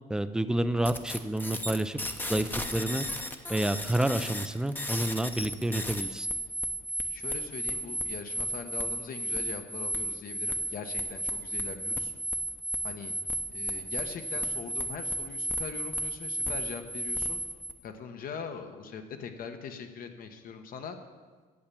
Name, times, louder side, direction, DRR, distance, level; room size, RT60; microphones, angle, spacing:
voice 1, 0.1-2.0 2.3-3.1 3.5-6.3, right 1 dB, 5° right, 11 dB, 0.5 m, -29 dB
sound 1, 0.8-17.7, right 1 dB, 10° left, 0.8 m, -34 dB
voice 2, 7.1-12.1 12.8-13.1 13.5-17.4 17.8-21.0, left 6 dB, 55° left, 7 dB, 1.2 m, -41 dB
8.8 x 7.1 x 8.5 m, 1.5 s
cardioid pair, 110°, 17 cm